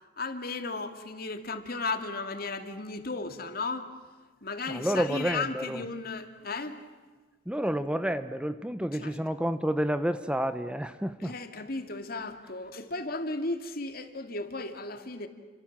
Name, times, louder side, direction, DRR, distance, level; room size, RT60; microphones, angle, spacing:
voice 1, 0.2-3.9 4.4-6.8 8.9-9.1 11.2-15.3, left 3 dB, 55° left, 7 dB, 2.5 m, -35 dB
voice 2, 4.7-5.8 7.5-11.3, equal, 5° right, 11 dB, 0.8 m, -29 dB
30.0 x 26.5 x 7.4 m, 1.4 s
head